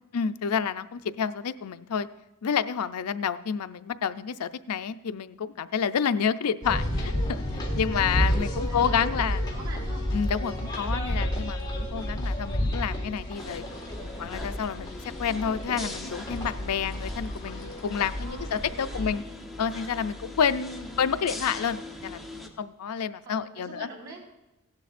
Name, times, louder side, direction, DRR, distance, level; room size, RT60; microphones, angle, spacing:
voice 1, 0.1-2.1 2.4-9.4 10.1-13.6 14.0-19.2 19.6-22.3 22.6-23.9, left 7 dB, 80° left, 12 dB, 0.5 m, -29 dB
sound 1, 6.6-19.1, equal, 20° left, 1.7 m, -31 dB
voice 2, 8.6-10.1 18.2-19.4 20.8-21.1 23.2-24.3, right 2 dB, 85° right, -5 dB, 4.4 m, -45 dB
sound 2, 13.3-22.5, left 1 dB, ahead, 0.9 m, -42 dB
16.5 x 11.5 x 2.5 m, 0.94 s
head